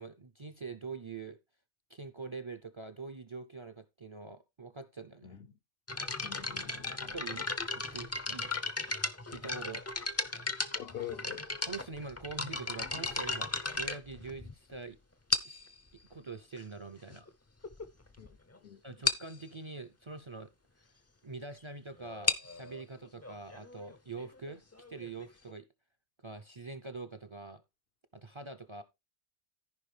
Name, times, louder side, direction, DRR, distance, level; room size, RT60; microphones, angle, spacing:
voice 1, 0.0-1.4 1.9-5.4 7.0-8.5 9.3-9.8 11.7-15.0 15.4-15.6 16.1-17.3 18.8-20.5 20.8-20.9 21.2-24.6 24.9-25.7 26.2-27.6 28.1-28.8, right 4 dB, 35° right, 0.5 m, -44 dB
sound 1, 5.9-14.7 15.3-15.7 16.6-16.7 17.3-17.4 17.6-17.8 18.2-18.3 18.5-18.6 19.0-19.3 22.0-25.5, left 3 dB, 20° left, 0.4 m, -35 dB
voice 2, 6.2-7.4 10.7-11.5 18.2-18.3 18.6-19.0, left 10 dB, 65° left, 0.8 m, -45 dB
14.0 x 5.1 x 3.3 m
omnidirectional pair, 1.1 m